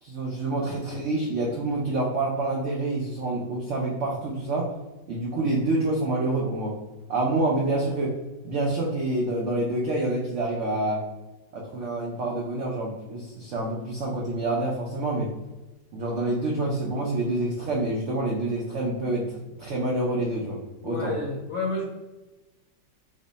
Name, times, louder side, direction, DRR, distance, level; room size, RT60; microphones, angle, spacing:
voice 1, 0.0-4.7 5.1-6.7 7.1-8.1 8.4-11.0 11.5-15.3 15.9-21.1, right 2 dB, 85° right, -2 dB, 0.6 m, -27 dB
voice 2, 20.8-21.8, left 2 dB, 70° left, -1 dB, 0.8 m, -30 dB
3.1 x 2.1 x 3.9 m, 1.1 s
omnidirectional pair, 2.0 m